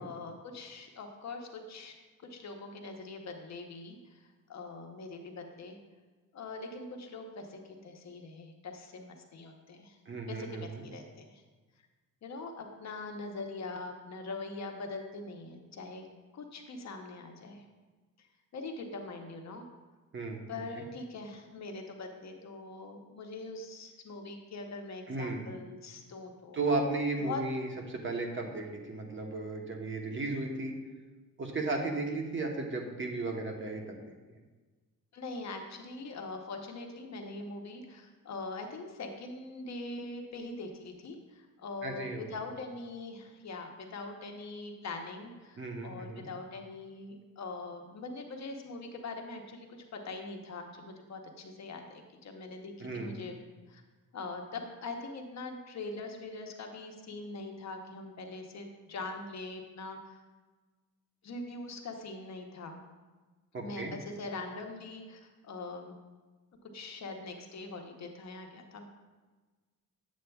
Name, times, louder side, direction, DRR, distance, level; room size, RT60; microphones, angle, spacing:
voice 1, 0.0-1.9 2.3-5.8 6.3-10.0 10.3-11.4 12.2-16.0 16.3-17.6 18.2-18.3 18.5-19.6 20.5-26.6 27.2-27.4 35.1-49.7 49.9-53.4 53.7-53.8 54.1-60.2 61.2-62.8 63.6-66.0 66.7-68.8, left 3 dB, 50° left, 3 dB, 0.8 m, -42 dB
voice 2, 10.1-10.8 20.1-20.8 25.1-25.4 26.5-30.7 31.4-34.0 41.8-42.2 45.6-46.2 52.8-53.1 63.5-63.9, right 2 dB, 35° right, 2 dB, 1.0 m, -35 dB
8.3 x 7.7 x 2.3 m, 1.3 s
wide cardioid pair, 135°, 34 cm